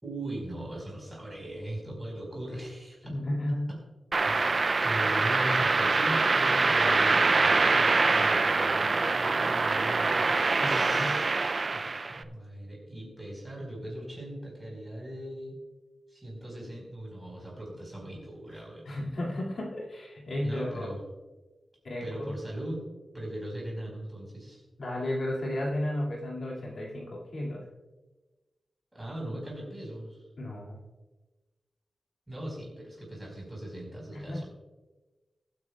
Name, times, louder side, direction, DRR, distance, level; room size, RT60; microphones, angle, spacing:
voice 1, 0.0-3.1 3.7-3.8 4.2-11.4 11.7-15.5 16.1-18.9 20.4-21.0 22.0-22.8 23.1-24.6 28.9-30.3 32.3-34.4, right 1 dB, 15° right, -2 dB, 4.6 m, -39 dB
voice 2, 3.0-3.7 10.6-11.2 18.9-20.9 21.8-22.3 24.8-27.6 30.4-30.8 34.1-34.4, left 1 dB, 60° left, -3 dB, 2.4 m, -33 dB
sound 1, 4.1-12.2, right 3 dB, 35° right, 0.4 m, -24 dB
22.0 x 9.3 x 2.4 m, 1.2 s
wide cardioid pair, 170°, 0 cm